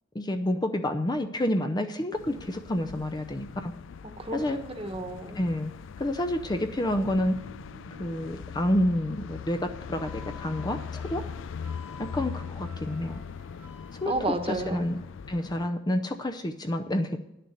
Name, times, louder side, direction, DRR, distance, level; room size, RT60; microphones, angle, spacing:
voice 1, 0.1-3.7 4.3-4.6 5.4-5.7 6.0-7.4 8.0-11.2 12.0-13.2 14.0-14.1 14.5-15.0 15.3-17.2, left 1 dB, 20° left, 6 dB, 0.6 m, -29 dB
sound 1, 2.1-15.7, left 6 dB, 70° left, 0.4 m, -41 dB
sound 2, 4.1-9.1, equal, 80° right, 1.8 m, -54 dB
voice 2, 4.2-5.4 14.0-14.8, right 2 dB, 30° right, 7 dB, 1.2 m, -32 dB
Wind instrument woodwind instrument, 9.9-14.1, left 4 dB, 10° right, 0.8 m, -50 dB
10.5 x 6.7 x 7.9 m, 0.87 s
head